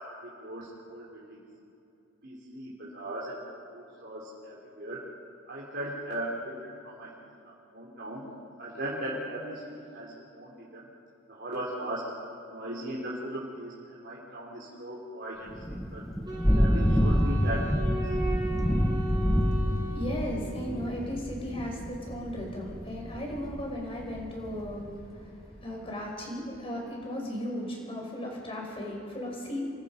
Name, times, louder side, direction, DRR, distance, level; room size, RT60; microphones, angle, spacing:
voice 1, 0.0-1.4 2.2-3.5 3.7-5.0 5.5-7.1 7.4-8.2 8.6-9.6 9.9-10.9 11.3-12.1 12.5-16.1 16.5-18.0, right 1 dB, 55° right, -5 dB, 3.9 m, -38 dB
Thunder / Rain, 15.5-25.0, equal, ahead, 1.4 m, -28 dB
Wind instrument woodwind instrument, 16.2-20.7, right 1 dB, 20° right, 4.7 m, -37 dB
voice 2, 19.9-29.6, equal, 30° left, 0 dB, 5.4 m, -36 dB
28.0 x 22.5 x 5.3 m, 2.8 s
head